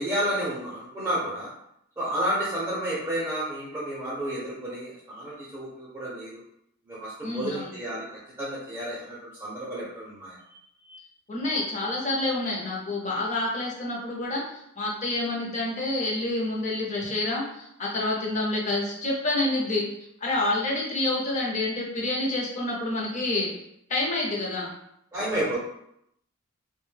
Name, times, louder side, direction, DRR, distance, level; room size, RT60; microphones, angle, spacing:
voice 1, 0.0-1.5 2.0-6.4 6.9-8.0 8.4-10.4 10.9-11.0 25.1-25.6, right 1 dB, 15° right, -8 dB, 0.6 m, -31 dB
voice 2, 7.2-7.7 11.3-14.4 14.8-19.9 20.2-23.5 23.9-24.7, left 2 dB, 35° left, -3 dB, 0.7 m, -28 dB
2.5 x 2.2 x 3.2 m, 0.76 s
head